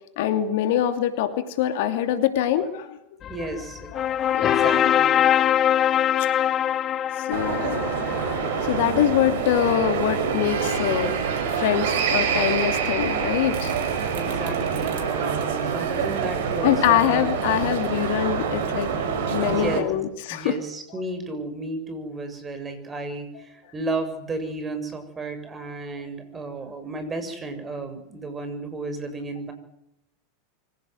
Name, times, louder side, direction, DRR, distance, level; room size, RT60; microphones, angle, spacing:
voice 1, 0.2-3.0 3.9-4.8 5.5-5.8 7.2-7.8 8.6-11.1 11.5-13.7 16.6-18.9 19.3-20.6, left 11 dB, 60° left, 8 dB, 2.8 m, -24 dB
sound 1, 3.2-9.1, left 10 dB, 35° left, 0.9 m, -23 dB
voice 2, 3.3-3.9 4.4-5.2 14.1-17.3 19.4-19.9 20.3-29.5, right 2 dB, 20° right, 9 dB, 7.2 m, -33 dB
sound 2, 7.3-19.8, right 6 dB, 65° right, 5.2 m, -26 dB
25.0 x 17.0 x 9.9 m, 0.83 s
hypercardioid pair, 90°, 0 cm